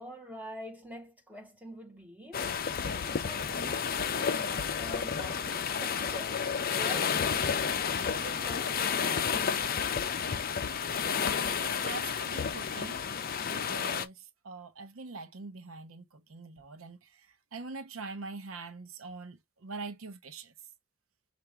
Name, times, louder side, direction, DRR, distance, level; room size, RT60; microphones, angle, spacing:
voice 1, 0.0-2.5 2.8-7.8 8.1-9.8, equal, 10° right, 1.3 m, -46 dB
sound 1, 2.3-14.1, left 6 dB, 45° left, 0.5 m, -31 dB
voice 2, 11.6-13.0 13.4-17.3 17.5-20.5, right 3 dB, 85° right, 0.7 m, -43 dB
5.7 x 2.5 x 3.4 m
head